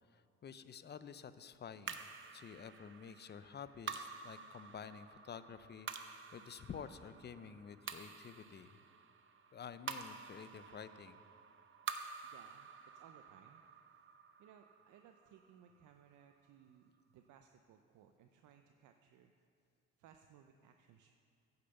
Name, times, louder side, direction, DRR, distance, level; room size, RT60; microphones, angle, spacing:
voice 1, 0.1-2.0 2.3-8.8 9.5-11.2, left 7 dB, 35° left, 13 dB, 0.5 m, -50 dB
sound 1, 1.9-16.4, right 6 dB, 40° right, 0.7 m, -50 dB
voice 2, 12.2-13.6 14.4-19.3 20.0-21.1, right 8 dB, 80° right, 6 dB, 0.6 m, -63 dB
9.6 x 6.8 x 6.9 m, 2.4 s
cardioid pair, 90°, 30 cm